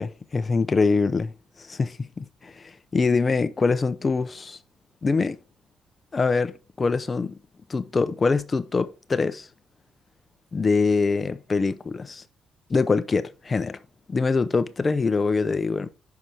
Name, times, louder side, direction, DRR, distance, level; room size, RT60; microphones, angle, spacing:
voice 1, 0.0-1.3 1.6-4.6 5.0-5.4 6.1-7.4 7.7-9.5 10.5-12.2 12.7-13.8 14.1-15.9, left 4 dB, 30° left, 0.7 m, -24 dB
5.9 x 4.8 x 5.4 m
cardioid pair, 90°, 0 cm